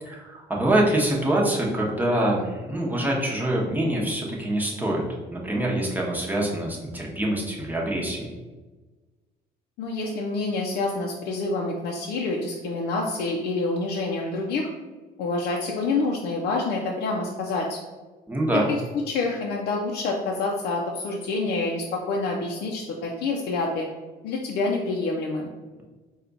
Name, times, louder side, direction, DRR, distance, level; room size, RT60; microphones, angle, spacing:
voice 1, 0.0-5.0 5.3-8.3 18.3-18.7, right 1 dB, 10° right, -2 dB, 0.9 m, -25 dB
voice 2, 9.8-14.7 15.2-17.8 18.7-18.8 19.1-23.9 24.2-25.5, left 3 dB, 75° left, -1 dB, 0.5 m, -27 dB
4.3 x 2.3 x 3.9 m, 1.3 s
cardioid pair, 110°, 17 cm